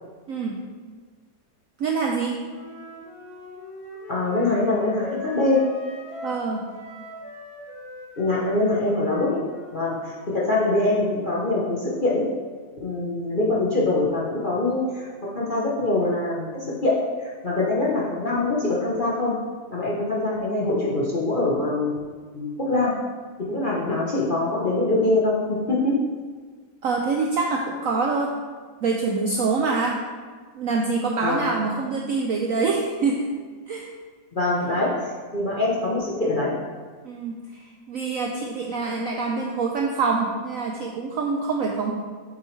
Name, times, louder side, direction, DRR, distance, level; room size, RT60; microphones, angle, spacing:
voice 1, 0.3-0.6 1.8-2.4 6.2-6.7 26.8-28.3 28.8-30.0 30.6-33.3 33.7-33.9 37.0-41.9, right 4 dB, 75° right, 1 dB, 0.8 m, -25 dB
Wind instrument woodwind instrument, 2.4-6.4 6.7-10.6, left 1 dB, 70° left, 2.3 m, -40 dB
voice 2, 4.1-5.6 8.2-9.4 9.7-12.2 12.8-15.1 15.3-16.5 16.8-16.9 17.2-19.4 19.7-22.0 22.3-22.9 23.5-26.0 31.2-31.4 34.3-34.9 35.3-36.5, left 2 dB, 40° left, -6 dB, 0.7 m, -23 dB
7.6 x 6.4 x 3.2 m, 1.5 s
omnidirectional pair, 2.0 m